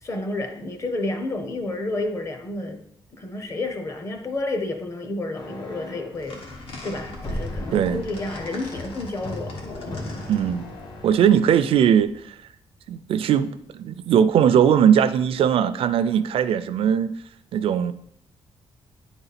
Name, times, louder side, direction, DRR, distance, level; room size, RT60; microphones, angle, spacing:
voice 1, 0.0-2.8 3.2-6.5 6.8-10.3, left 2 dB, 30° left, 0.8 m, -30 dB
sound 1, 5.3-6.2 7.2-8.8 9.2-11.1, left 1 dB, 50° left, 1.3 m, -38 dB
sound 2, 6.1-12.2, left 2 dB, 70° left, 1.4 m, -38 dB
voice 2, 10.3-10.7 11.0-12.4 12.9-17.1 17.5-17.9, right 8 dB, 75° right, 0.4 m, -19 dB
9.3 x 4.0 x 4.1 m
wide cardioid pair, 165°, 10 cm